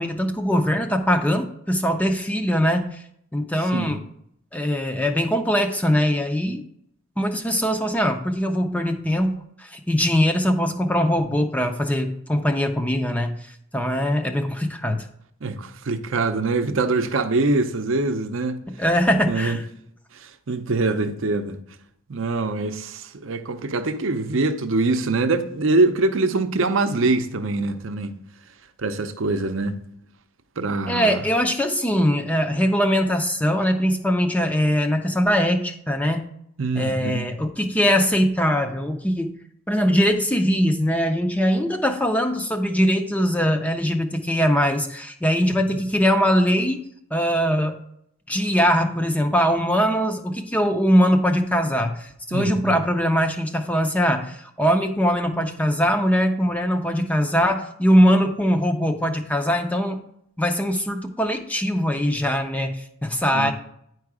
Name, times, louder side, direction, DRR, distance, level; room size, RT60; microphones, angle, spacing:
voice 1, 0.0-3.0 3.3-4.0 4.5-6.6 7.2-15.1 18.7-19.6 30.9-36.3 36.8-39.3 39.7-46.8 47.1-47.8 48.3-60.0 60.4-63.5, equal, 5° left, 0.4 m, -21 dB
voice 2, 15.4-18.6 19.3-19.6 20.2-21.6 22.1-28.1 28.8-29.8 30.6-31.2 36.6-37.3 45.7-45.8 52.3-52.8 63.3-63.5, right 3 dB, 60° right, 0.6 m, -24 dB
9.5 x 4.7 x 4.8 m
head